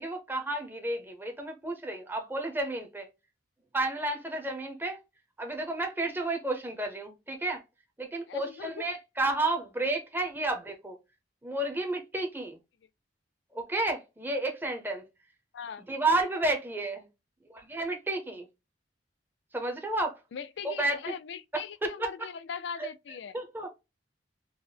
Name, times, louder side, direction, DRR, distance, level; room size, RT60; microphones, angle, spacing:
voice 1, 0.0-3.1 3.7-5.0 5.4-7.6 8.0-11.0 11.4-12.6 13.5-15.0 15.9-17.1 17.5-18.5 19.5-20.2 20.8-21.1 22.0-22.3 22.8-22.9 23.3-23.7, right 2 dB, 10° right, 0.6 m, -31 dB
voice 2, 8.3-8.9 15.5-15.8 20.3-23.4, left 6 dB, 70° left, 0.4 m, -40 dB
3.8 x 2.0 x 3.3 m
head